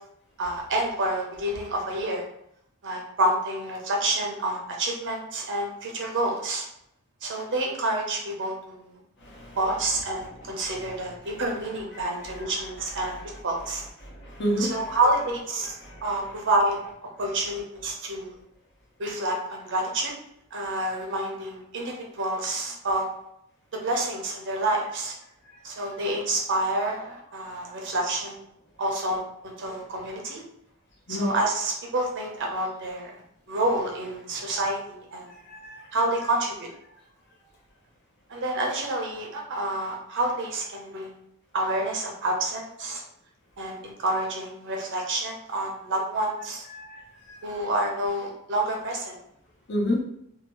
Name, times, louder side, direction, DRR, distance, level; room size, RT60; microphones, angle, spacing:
voice 1, 0.4-2.2 2.8-6.6 7.2-9.0 9.6-13.8 14.6-15.7 16.0-16.8 17.2-18.4 19.0-20.2 20.5-23.1 23.7-25.1 25.6-28.4 28.8-30.4 31.1-33.1 33.5-35.3 35.9-36.7 38.3-41.1 41.5-43.0 43.6-46.6 47.4-49.2, right 1 dB, 55° right, 0 dB, 0.8 m, -28 dB
voice 2, 9.2-9.6 14.0-15.0 15.8-16.0 31.1-31.3 35.3-35.9 46.7-47.5 49.7-50.0, equal, 50° left, -2 dB, 0.9 m, -30 dB
2.8 x 2.6 x 3.0 m, 0.74 s
head